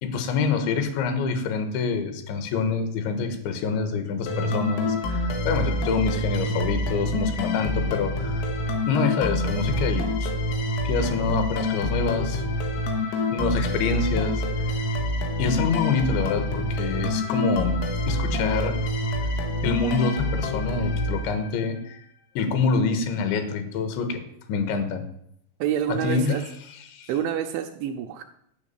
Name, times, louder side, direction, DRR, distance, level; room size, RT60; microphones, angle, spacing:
voice 1, 0.0-8.5 8.9-10.3 10.8-12.4 13.3-14.4 15.4-17.8 18.1-18.8 19.6-22.0 22.4-24.2 24.5-25.1 25.9-26.4 26.9-27.1, left 4 dB, 70° left, 8 dB, 3.3 m, -26 dB
sound 1, 4.3-21.8, left 1 dB, 90° left, 4.2 m, -27 dB
voice 2, 25.6-26.4 27.1-28.2, right 9 dB, 80° right, 4 dB, 2.8 m, -27 dB
11.0 x 6.1 x 8.8 m, 0.72 s
omnidirectional pair, 5.8 m